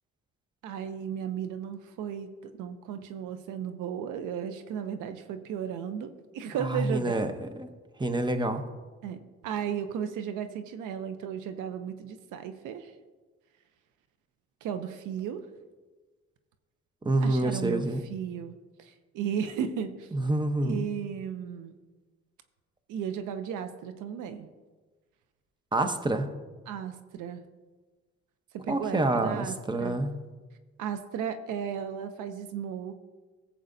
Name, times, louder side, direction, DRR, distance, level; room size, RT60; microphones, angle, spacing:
voice 1, 0.6-7.3 9.0-12.9 14.6-15.5 17.2-18.5 18.8-20.1 20.6-21.7 22.9-24.5 26.7-27.4 28.5-30.0 30.8-33.0, right 8 dB, 85° right, 9 dB, 0.7 m, -35 dB
voice 2, 6.6-7.7 8.0-8.6 17.0-18.0 20.1-20.9 25.7-26.3 28.7-30.1, right 2 dB, 15° right, 7 dB, 0.9 m, -27 dB
15.5 x 7.8 x 2.7 m, 1.3 s
cardioid pair, 90°, 30 cm